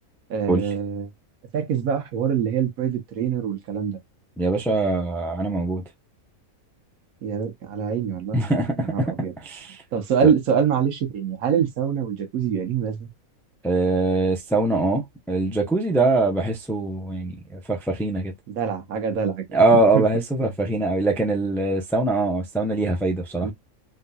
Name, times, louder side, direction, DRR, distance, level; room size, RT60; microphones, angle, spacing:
voice 1, 0.3-1.1 1.5-4.0 7.2-8.4 8.8-9.3 9.9-13.1 18.5-20.0 20.4-20.5 23.4-23.5, right 7 dB, 75° right, 1.2 m, -25 dB
voice 2, 4.4-5.8 8.3-9.1 9.4-9.8 10.2-10.3 13.6-18.3 19.5-23.5, right 2 dB, 5° left, 0.3 m, -22 dB
3.7 x 2.7 x 2.3 m
omnidirectional pair, 1.5 m